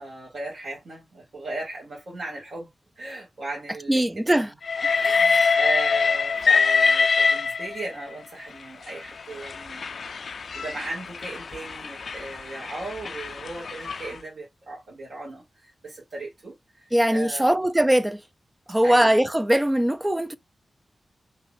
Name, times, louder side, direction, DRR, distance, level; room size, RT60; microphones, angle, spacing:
voice 1, 0.0-2.7 3.0-4.4 5.1-16.8 17.1-17.5 18.8-19.1, right 2 dB, 60° right, 2.0 m, -37 dB
voice 2, 3.9-4.5 4.8-5.6 16.9-18.2 18.7-20.4, right 1 dB, 10° right, 0.3 m, -22 dB
Train, 4.6-8.0 8.9-14.1, left 5 dB, 55° left, 0.4 m, -24 dB
5.3 x 3.0 x 2.4 m
wide cardioid pair, 160°, 0 cm